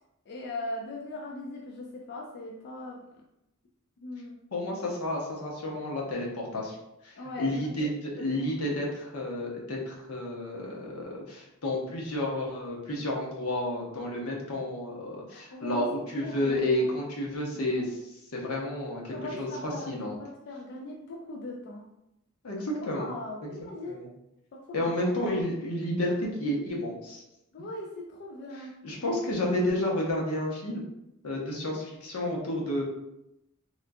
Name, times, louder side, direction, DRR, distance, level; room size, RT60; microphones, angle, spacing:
voice 1, 0.3-3.1 4.0-4.4 7.2-7.9 8.2-8.5 15.3-15.9 16.2-16.9 17.5-17.9 19.1-21.9 22.8-24.1 24.5-25.0 27.5-28.8, left 2 dB, 55° left, -1 dB, 0.4 m, -40 dB
voice 2, 4.5-6.7 7.0-17.8 18.3-20.2 22.4-23.1 23.4-23.5 23.9-24.1 24.7-27.2 28.8-30.8 31.2-32.8, left 1 dB, 85° left, -2 dB, 0.9 m, -31 dB
3.5 x 2.4 x 2.6 m, 0.85 s
head